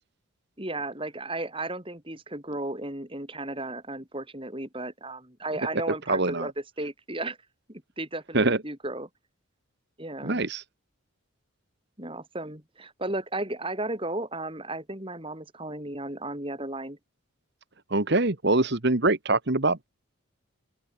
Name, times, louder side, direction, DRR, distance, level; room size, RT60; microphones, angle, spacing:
voice 1, 0.6-6.5 6.8-7.4 7.7-9.1 10.0-10.4 12.0-17.0, right 2 dB, 25° right, 4.5 m, -34 dB
voice 2, 6.1-6.5 8.3-8.6 10.2-10.6 17.9-19.9, right 2 dB, 50° right, 1.6 m, -24 dB
open air
head